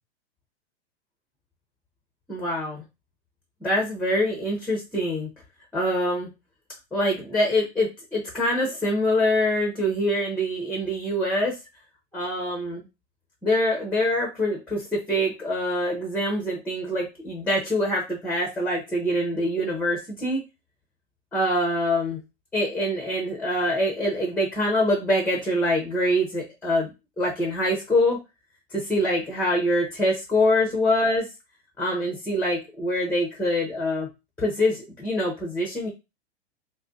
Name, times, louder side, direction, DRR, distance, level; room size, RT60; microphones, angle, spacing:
voice 1, 2.3-2.8 3.6-5.3 5.7-6.3 6.9-11.5 12.1-12.9 13.4-20.4 21.3-22.2 22.5-26.9 27.2-28.2 28.7-31.3 31.8-34.1 34.4-35.9, left 1 dB, 5° left, 1 dB, 0.5 m, -24 dB
2.5 x 2.1 x 3.6 m, 0.25 s
hypercardioid pair, 120°, 35 cm